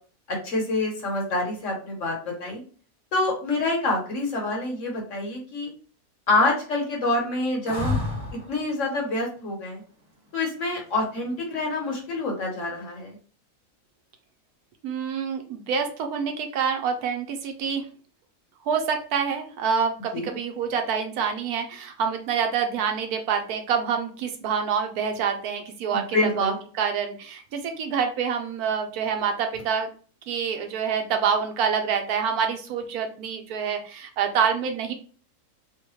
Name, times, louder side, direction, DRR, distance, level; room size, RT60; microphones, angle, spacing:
voice 1, 0.3-2.6 3.1-5.7 6.3-8.0 8.5-9.8 10.3-13.2 20.1-20.3 25.9-26.6, left 2 dB, 55° left, 0 dB, 1.2 m, -26 dB
sound 1, 7.7-8.6 11.2-11.8, left 3 dB, 30° right, 1.6 m, -29 dB
voice 2, 14.8-17.9 18.6-29.9 30.3-34.9, right 6 dB, 75° right, 5 dB, 1.1 m, -27 dB
3.9 x 2.1 x 3.0 m, 0.41 s
omnidirectional pair, 1.7 m